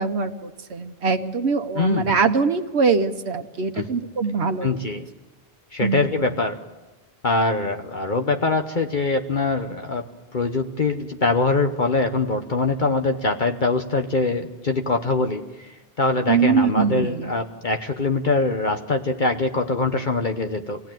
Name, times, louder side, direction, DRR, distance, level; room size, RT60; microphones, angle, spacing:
voice 1, 0.0-4.7 5.8-6.3 16.3-17.3, right 5 dB, 85° right, 6 dB, 1.3 m, -23 dB
voice 2, 1.8-2.1 3.7-3.9 4.6-5.1 5.7-6.6 7.2-10.1 10.3-15.7 16.0-20.8, left 3 dB, 50° left, 5 dB, 1.1 m, -23 dB
25.5 x 17.5 x 9.1 m, 1.2 s
omnidirectional pair, 1.1 m